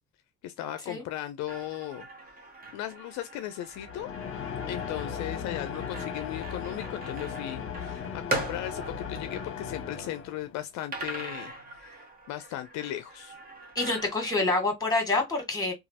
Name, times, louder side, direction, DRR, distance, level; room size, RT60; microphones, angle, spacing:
voice 1, 0.4-2.1 2.7-4.1 4.7-11.5 11.8-12.0 12.3-13.4, left 13 dB, 70° left, 0.5 m, -37 dB
sound 1, 1.5-10.2 10.9-14.4, right 2 dB, 30° right, 1.0 m, -41 dB
sound 2, 3.7-10.6, left 7 dB, 45° left, 0.8 m, -37 dB
voice 2, 13.8-15.7, left 2 dB, 10° left, 1.8 m, -27 dB
3.0 x 2.4 x 2.8 m
supercardioid pair, 90°, 30 cm